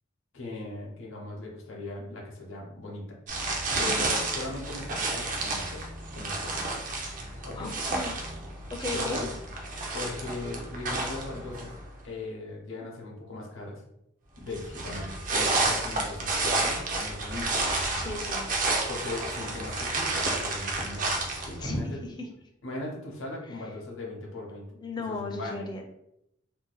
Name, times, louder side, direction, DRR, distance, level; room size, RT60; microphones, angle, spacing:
voice 1, 0.3-3.2 3.7-5.8 6.1-6.8 7.4-7.8 8.9-9.3 9.9-11.7 12.0-13.8 14.4-17.6 18.9-22.0 22.6-24.7 25.1-25.6, left 2 dB, 65° left, -3 dB, 0.7 m, -38 dB
sound 1, 3.3-11.9 14.5-21.8, right 2 dB, 40° right, 0.5 m, -31 dB
voice 2, 3.7-4.0 7.6-8.2 8.7-9.2 18.0-18.4 21.6-22.3 24.8-25.8, left 2 dB, 20° left, 2 dB, 0.4 m, -35 dB
2.6 x 2.2 x 3.9 m, 0.79 s
head